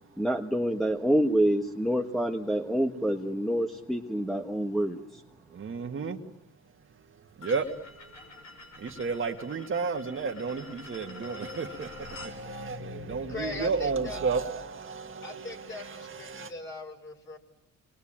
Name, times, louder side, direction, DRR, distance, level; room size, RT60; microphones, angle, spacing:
voice 1, 0.2-5.2, equal, ahead, 4 dB, 1.4 m, -27 dB
voice 2, 5.5-6.2 7.4-7.7 8.8-16.5, right 5 dB, 40° right, 3 dB, 1.9 m, -32 dB
sound 1, 7.4-12.4, left 2 dB, 75° left, 6.2 m, -47 dB
sound 2, 10.9-15.6, left 3 dB, 15° right, 2.2 m, -46 dB
voice 3, 13.3-14.2 15.2-17.4, left 2 dB, 40° left, 2 dB, 6.1 m, -40 dB
29.0 x 22.0 x 8.9 m, 0.91 s
cardioid pair, 90°, 30 cm